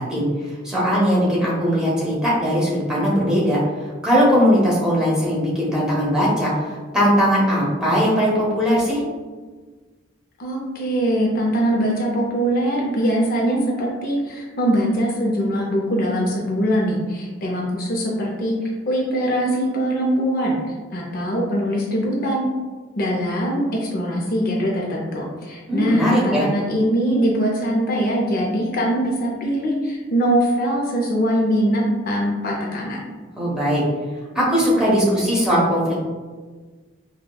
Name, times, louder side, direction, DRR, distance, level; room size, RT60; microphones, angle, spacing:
voice 1, 0.0-3.6 4.0-9.0 25.7-26.4 33.4-33.8 34.3-36.1, equal, 5° right, -7 dB, 0.9 m, -19 dB
voice 2, 10.4-20.6 20.9-22.4 23.0-33.0, equal, 50° left, -2 dB, 0.5 m, -22 dB
5.0 x 2.1 x 2.2 m, 1.4 s
head